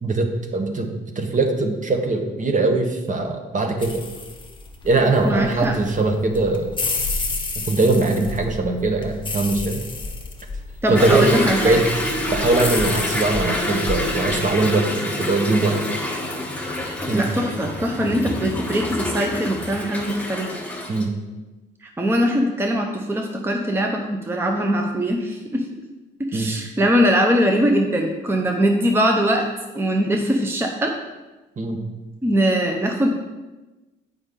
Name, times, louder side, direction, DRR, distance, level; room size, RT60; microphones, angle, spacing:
voice 1, 0.0-4.1 4.8-6.7 7.6-9.8 10.9-11.4 11.6-11.9 12.3-16.0 17.1-17.2 20.9-21.1 26.3-26.5 31.6-31.8, right 2 dB, 40° right, 4 dB, 1.1 m, -21 dB
sound 1, 3.8-14.5, left 3 dB, 25° left, 1.0 m, -31 dB
voice 2, 5.2-5.8 10.8-11.8 17.1-20.6 22.0-25.7 26.2-29.5 29.7-31.0 32.2-33.1, equal, 10° right, 2 dB, 0.7 m, -21 dB
Toilet flush / Drip / Trickle dribble, 11.0-21.1, left 1 dB, 5° left, 1.3 m, -27 dB
7.9 x 5.3 x 3.7 m, 1.2 s
cardioid pair, 90°, 20 cm